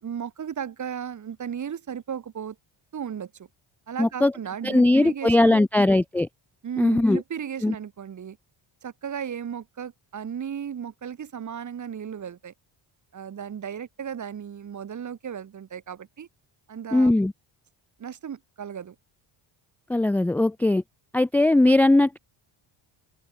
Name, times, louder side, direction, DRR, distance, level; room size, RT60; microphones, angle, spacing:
voice 1, 0.0-2.6 2.9-3.3 3.9-6.0 6.6-8.4 8.8-12.5 13.1-16.3 16.7-17.1 18.0-19.0, right 8 dB, 35° right, 3.5 m, -35 dB
voice 2, 4.0-4.3 4.6-6.3 6.8-7.2 7.6-7.7 16.9-17.3 19.9-20.8 21.1-22.2, left 2 dB, 5° left, 0.3 m, -19 dB
open air
cardioid pair, 170°, 48 cm